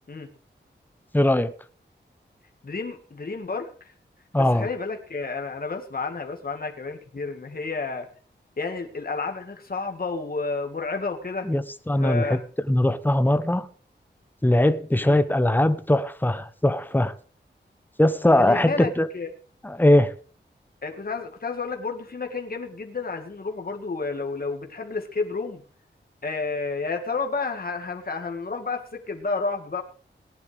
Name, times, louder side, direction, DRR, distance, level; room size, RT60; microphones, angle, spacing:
voice 1, 1.1-1.5 4.3-4.7 11.4-12.4 12.7-13.7 14.4-17.1 18.0-19.1 19.6-20.1, left 1 dB, 10° left, 1.0 m, -20 dB
voice 2, 2.6-3.7 4.4-8.1 8.6-11.5 12.0-12.4 15.0-15.2 18.4-19.3 20.8-25.6 26.2-29.8, left 4 dB, 50° left, 2.0 m, -31 dB
18.0 x 11.0 x 3.6 m
wide cardioid pair, 100°, 19 cm